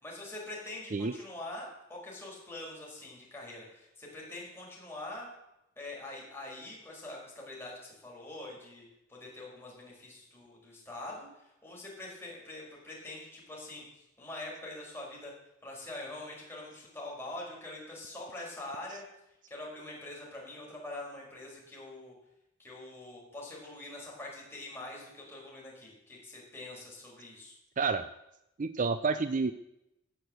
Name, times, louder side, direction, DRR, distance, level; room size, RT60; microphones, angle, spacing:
voice 1, 0.0-5.3 5.8-8.8 9.1-15.3 15.6-19.0 19.5-22.1 22.6-27.6, left 2 dB, 10° left, -4 dB, 5.2 m, -44 dB
voice 2, 28.6-29.5, right 4 dB, 40° right, 12 dB, 0.5 m, -29 dB
17.5 x 6.7 x 7.8 m, 0.87 s
head